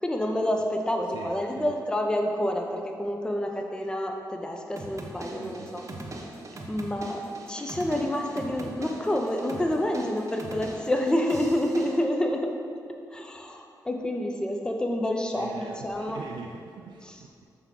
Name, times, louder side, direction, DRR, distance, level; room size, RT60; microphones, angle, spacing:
voice 1, 0.0-5.8 6.7-7.2 7.5-12.5 13.1-16.2 17.1-17.2, left 1 dB, 10° left, 2 dB, 0.6 m, -28 dB
voice 2, 1.1-1.7 5.3-6.0 15.3-17.4, right 5 dB, 80° right, 0 dB, 0.3 m, -43 dB
sound 1, 4.8-12.0, right 2 dB, 40° right, 0.8 m, -41 dB
7.2 x 3.5 x 3.7 m, 2.4 s
cardioid pair, 55°, 8 cm